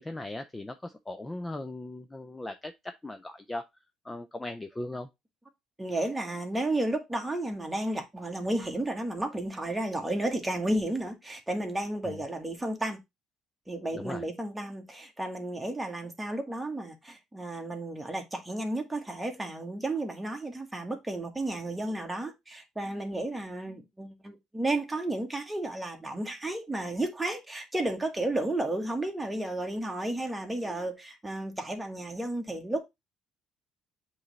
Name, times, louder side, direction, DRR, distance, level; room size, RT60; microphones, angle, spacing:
voice 1, 0.0-3.7 4.0-5.1 12.1-12.2 13.9-14.2, left 2 dB, 10° left, 0.5 m, -38 dB
voice 2, 5.8-13.0 13.7-32.9, right 1 dB, 10° right, 1.4 m, -32 dB
7.6 x 3.2 x 4.0 m
cardioid pair, 125°, 0 cm